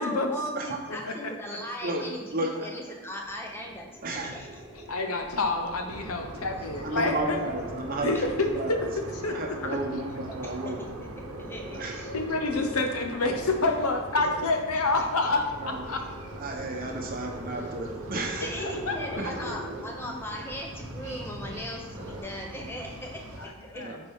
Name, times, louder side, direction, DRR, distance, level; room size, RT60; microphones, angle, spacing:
voice 1, 0.0-4.6 10.6-10.7 11.2-12.1 14.2-14.4 18.4-23.9, equal, 10° left, 1 dB, 0.7 m, -38 dB
voice 2, 1.8-2.7 4.0-4.3 4.9-5.0 6.8-8.8 9.2-11.0 11.7-12.0 15.2-16.0 16.3-18.5 19.2-19.4 20.0-20.5 23.7-24.0, right 2 dB, 40° right, 2 dB, 0.9 m, -33 dB
sound 1, 3.2-9.7 10.1-14.5 15.0-20.2 20.5-22.2, right 1 dB, 15° right, 1.5 m, -43 dB
voice 3, 4.9-7.4 8.0-8.8 9.2-9.8 12.0-16.0 18.6-18.9 23.4-24.0, left 3 dB, 80° left, 4 dB, 0.9 m, -28 dB
sound 2, 5.9-23.5, right 1 dB, 85° right, 0.9 m, -43 dB
9.9 x 4.4 x 3.6 m, 1.3 s
head